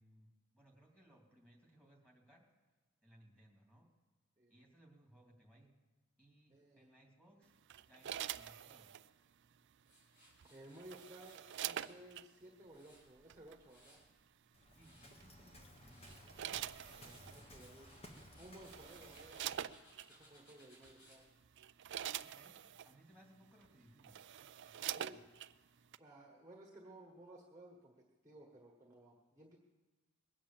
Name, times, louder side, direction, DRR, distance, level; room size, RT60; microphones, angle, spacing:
voice 1, 0.0-2.5 3.0-3.9 4.5-5.8 6.2-9.0 14.5-17.5 22.2-24.2 24.6-25.3, right 1 dB, 5° left, 0 dB, 2.8 m, -66 dB
voice 2, 6.5-6.9 10.5-14.0 17.0-17.9 18.4-19.7 20.1-21.3 24.9-25.2 26.0-29.6, right 1 dB, 15° right, 0 dB, 1.4 m, -57 dB
sound 1, 7.7-9.1 10.4-12.3 13.3-13.5 15.2-15.5 16.0-17.4 18.2-18.3 18.6-20.1 20.8-21.0 21.4-22.9 23.6-23.7 24.0-25.5 25.9-26.0, right 11 dB, 50° right, 0.4 m, -45 dB
Tools, 9.8-12.0 12.5-14.1 14.6-15.2 15.7-16.2 16.6-21.2, equal, 50° left, 5.9 m, -66 dB
Waves surf, 14.5-19.8, equal, 25° left, 1.5 m, -58 dB
21.0 x 8.7 x 7.4 m, 1.2 s
head